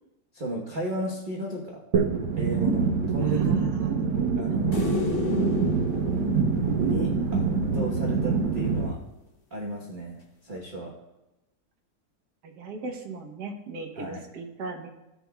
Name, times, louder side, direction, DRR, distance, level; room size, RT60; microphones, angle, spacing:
voice 1, 0.3-1.8 2.4-3.7 4.4-4.9 6.8-9.0 9.5-11.0 14.0-14.2, right 1 dB, 30° right, -2 dB, 1.1 m, -34 dB
sound 1, 1.9-8.9, right 5 dB, 80° right, 1.6 m, -25 dB
voice 2, 3.2-3.9 12.4-14.9, right 3 dB, 65° right, 1 dB, 1.6 m, -38 dB
sound 2, 4.7-8.0 10.6-10.7, left 3 dB, 40° left, 0.9 m, -32 dB
15.5 x 6.7 x 2.3 m, 0.96 s
omnidirectional pair, 2.0 m